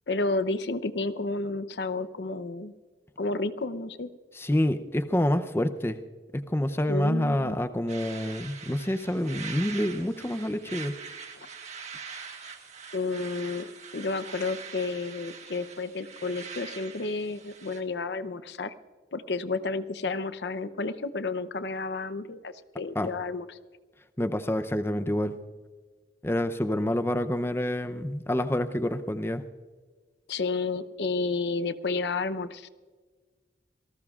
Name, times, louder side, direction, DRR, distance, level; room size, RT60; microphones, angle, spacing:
voice 1, 0.1-2.7 3.2-4.1 6.9-7.6 12.9-13.7 13.9-18.7 19.1-23.6 30.3-32.7, left 3 dB, 75° left, 13 dB, 0.7 m, -31 dB
voice 2, 4.3-6.0 6.3-11.0 23.0-23.1 24.2-25.3 26.2-29.4, left 1 dB, 15° left, 8 dB, 0.6 m, -27 dB
sound 1, 7.9-17.8, right 6 dB, 40° right, 1.7 m, -43 dB
27.0 x 18.5 x 2.4 m, 1.4 s
head